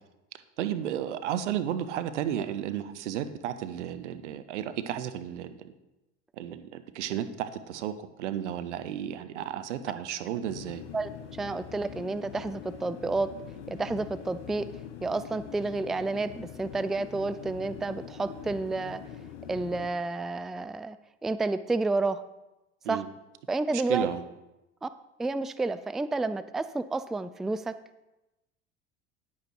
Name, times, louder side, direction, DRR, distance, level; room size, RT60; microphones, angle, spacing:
voice 1, 0.6-5.7 6.4-10.8 22.8-23.1 23.7-24.2, right 10 dB, 80° right, 11 dB, 0.9 m, -33 dB
sound 1, 10.4-19.9, left 9 dB, 80° left, 1.2 m, -43 dB
voice 2, 11.4-13.3 13.7-14.7 15.0-19.0 19.5-21.0 21.2-22.2 22.9-23.0 23.5-24.1 24.8-24.9 25.2-27.7, right 3 dB, ahead, 13 dB, 0.3 m, -30 dB
10.0 x 8.6 x 4.6 m, 0.98 s
hypercardioid pair, 75°, 35 cm